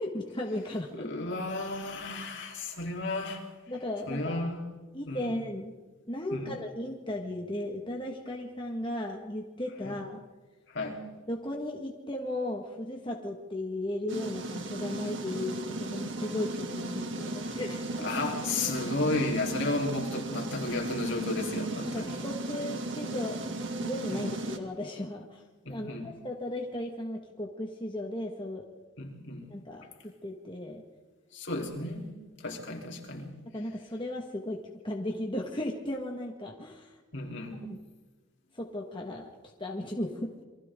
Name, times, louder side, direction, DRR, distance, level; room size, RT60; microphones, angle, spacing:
voice 1, 0.0-1.1 3.7-4.5 4.9-5.7 6.1-10.2 11.3-18.1 21.9-23.4 23.7-28.7 29.5-30.8 33.5-37.0 37.7-37.8 38.5-39.3 39.6-40.3, left 1 dB, 25° left, 0 dB, 1.7 m, -36 dB
voice 2, 0.9-3.4 4.1-4.6 5.1-5.4 6.3-6.5 9.8-10.0 10.7-11.0 18.0-22.2 24.1-24.4 25.7-26.1 29.0-29.5 31.3-33.3 37.1-37.7, left 2 dB, 60° left, 0 dB, 3.8 m, -33 dB
sound 1, 14.1-24.6, right 2 dB, 60° right, 2.5 m, -36 dB
28.5 x 23.5 x 3.8 m, 1.3 s
head